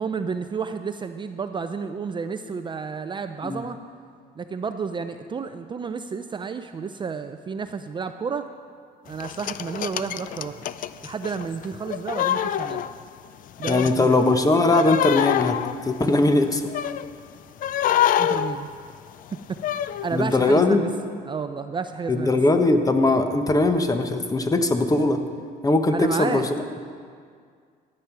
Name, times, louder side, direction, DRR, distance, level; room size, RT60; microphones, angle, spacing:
voice 1, 0.0-3.8 4.4-8.5 9.0-10.7 11.0-12.9 13.6-14.5 18.2-18.7 19.5-19.6 20.0-20.9 21.3-22.4 25.9-26.5, right 5 dB, 30° right, 9 dB, 0.5 m, -31 dB
sound 1, 9.2-13.3 13.6-17.1 17.6-20.1 20.5-20.6, left 11 dB, 55° left, 0.4 m, -26 dB
voice 2, 13.7-15.6 15.9-16.6 20.1-20.8 22.1-25.2 25.6-26.6, left 2 dB, 20° left, 7 dB, 1.0 m, -20 dB
13.5 x 8.9 x 5.9 m, 2.1 s
cardioid pair, 110°, 17 cm